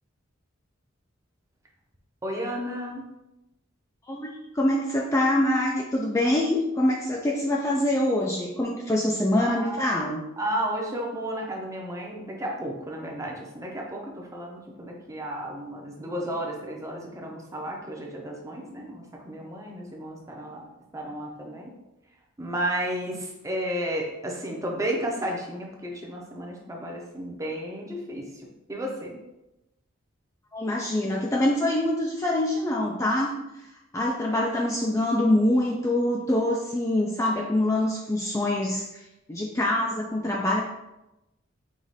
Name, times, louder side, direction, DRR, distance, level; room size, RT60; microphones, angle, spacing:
voice 1, 2.2-3.0 9.4-9.9 10.4-20.7 20.9-21.7 22.4-29.2, right 1 dB, 15° right, 0 dB, 0.7 m, -33 dB
voice 2, 4.1-10.2 30.5-33.3 33.9-40.6, left 1 dB, 15° left, -1 dB, 0.4 m, -25 dB
4.7 x 2.5 x 4.0 m, 0.94 s
head